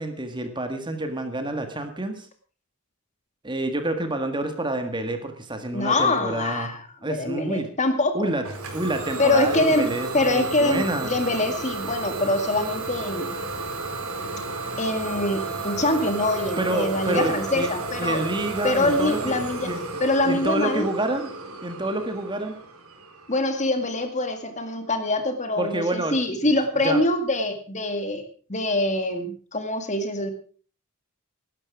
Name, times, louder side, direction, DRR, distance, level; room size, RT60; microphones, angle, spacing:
voice 1, 0.0-2.3 3.4-6.7 7.0-7.7 8.1-8.4 8.7-11.1 16.6-17.7 18.0-19.3 19.6-19.8 20.2-21.3 21.6-22.5 25.6-26.5 26.8-27.0, right 1 dB, 20° right, 7 dB, 1.8 m, -28 dB
voice 2, 5.7-8.3 9.2-9.9 10.1-13.4 14.8-18.2 18.6-19.7 20.0-20.9 23.3-28.2 28.5-30.3, left 2 dB, 35° left, 7 dB, 2.1 m, -24 dB
Idling / Domestic sounds home sounds, 8.4-24.0, right 3 dB, 80° right, 4.2 m, -33 dB
17.0 x 12.5 x 4.9 m, 0.41 s
head